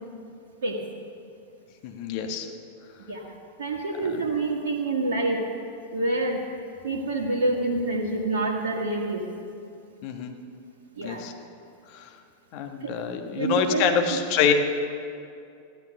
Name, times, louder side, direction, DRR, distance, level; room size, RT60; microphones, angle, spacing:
voice 1, 1.8-2.5 4.1-4.3 10.0-10.3 11.0-11.3 11.9-12.1 12.5-14.5, left 7 dB, 45° left, 5 dB, 1.3 m, -26 dB
voice 2, 3.6-5.4 5.9-6.4 6.8-9.2 10.9-11.2 12.8-12.9 13.4-13.8, right 2 dB, 65° right, -4 dB, 1.6 m, -27 dB
15.0 x 11.5 x 6.3 m, 2.5 s
figure-of-eight pair, 90°, 0 cm